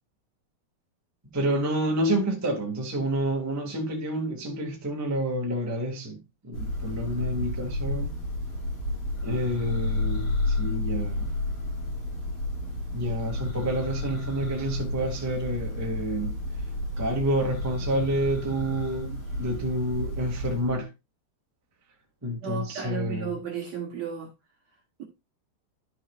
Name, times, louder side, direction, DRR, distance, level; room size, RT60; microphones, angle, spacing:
voice 1, 1.3-8.2 9.2-11.3 12.9-16.4 17.0-20.9 22.2-23.3, right 1 dB, 10° right, 1.0 m, -29 dB
Church bell, 6.5-20.8, left 1 dB, 30° left, 5.3 m, -31 dB
voice 2, 22.4-24.3 25.0-25.1, right 6 dB, 60° right, 1.9 m, -33 dB
12.0 x 6.7 x 2.4 m
omnidirectional pair, 4.5 m